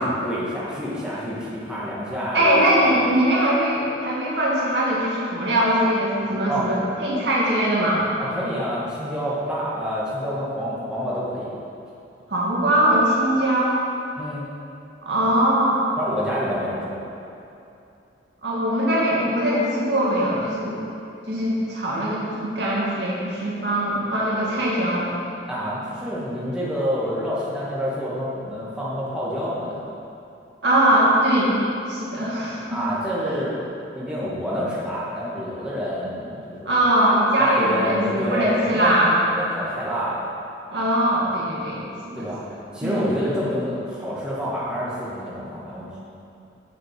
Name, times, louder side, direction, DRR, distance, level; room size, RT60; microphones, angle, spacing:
voice 1, 0.0-2.7 6.5-6.7 8.2-11.5 14.2-14.5 16.0-17.0 25.5-29.8 32.7-33.6 33.9-36.8 37.4-39.0 39.3-40.3 42.1-42.5 42.7-46.0, equal, 5° right, -8 dB, 1.7 m, -28 dB
voice 2, 2.3-8.0 12.3-13.8 15.0-15.8 18.4-20.8 21.3-25.1 30.6-31.6 31.9-32.8 33.2-33.3 36.6-39.1 40.7-41.8 42.2-42.3 42.8-43.1, right 1 dB, 70° right, -6 dB, 2.2 m, -21 dB
7.5 x 6.7 x 5.9 m, 2.6 s
head